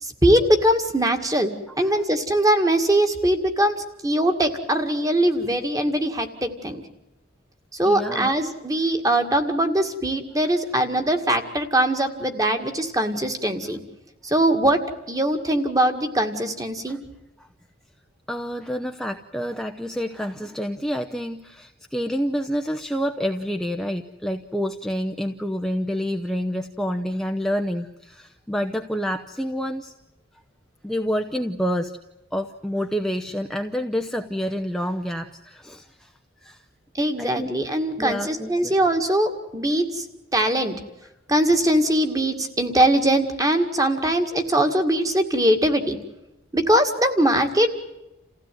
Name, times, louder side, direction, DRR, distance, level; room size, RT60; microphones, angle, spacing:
voice 1, 0.0-3.7 4.0-6.8 7.7-13.8 14.2-17.0 36.9-40.1 40.3-40.8 41.3-46.0 46.5-47.7, right 1 dB, 20° right, 7 dB, 2.1 m, -21 dB
voice 2, 7.9-8.3 16.9-17.0 17.4-17.5 18.3-29.9 30.8-32.0 32.3-36.1 36.4-36.6 37.2-37.5 38.0-38.8, equal, ahead, 5 dB, 0.8 m, -28 dB
28.5 x 16.0 x 9.3 m, 0.96 s
head